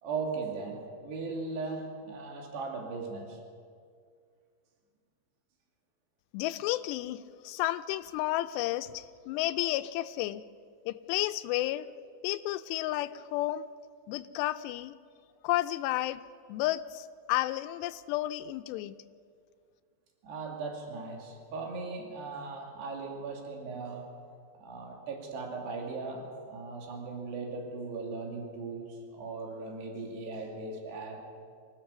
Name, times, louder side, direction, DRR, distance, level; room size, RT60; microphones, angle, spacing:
voice 1, 0.0-3.4 20.2-24.1 24.5-31.2, right 4 dB, 75° right, 0 dB, 4.6 m, -38 dB
voice 2, 6.3-10.4 10.9-11.9 12.2-13.7 14.1-14.9 15.4-16.2 16.5-19.0, left 15 dB, 90° left, 12 dB, 2.8 m, -32 dB
25.0 x 15.5 x 6.8 m, 2.1 s
omnidirectional pair, 4.8 m